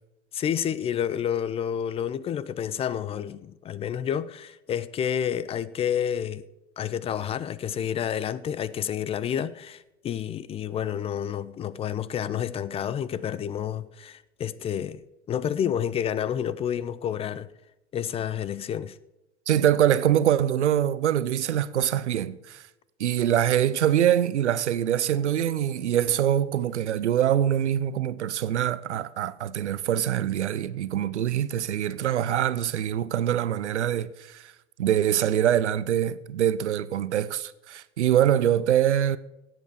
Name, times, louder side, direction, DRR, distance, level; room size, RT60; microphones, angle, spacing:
voice 1, 0.3-6.4 6.8-15.0 15.3-17.5 17.9-19.0, left 9 dB, 15° left, 0.4 m, -29 dB
voice 2, 19.5-22.6 23.0-34.4 34.8-39.2, right 10 dB, 75° right, 0.8 m, -24 dB
17.0 x 8.0 x 4.8 m
hypercardioid pair, 100°, 35 cm